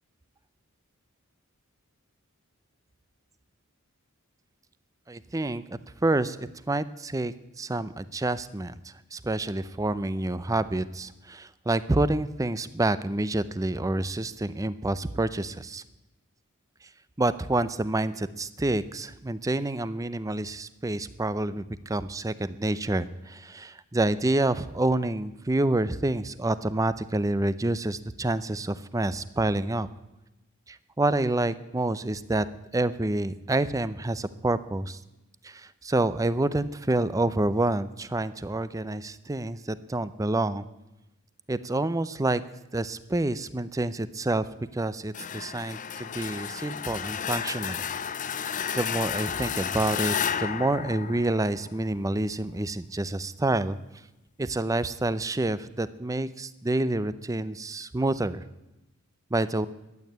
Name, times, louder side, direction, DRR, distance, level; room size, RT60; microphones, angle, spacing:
voice 1, 5.1-15.8 17.2-29.9 30.7-32.5 32.7-35.0 35.4-40.6 41.5-42.4 42.7-44.5 44.7-47.8 48.4-53.8 54.4-58.4 59.3-59.7, right 2 dB, 15° right, 15 dB, 0.5 m, -28 dB
sound 1, 45.1-51.9, left 8 dB, 35° left, 0.5 m, -32 dB
12.0 x 8.8 x 9.3 m, 0.97 s
head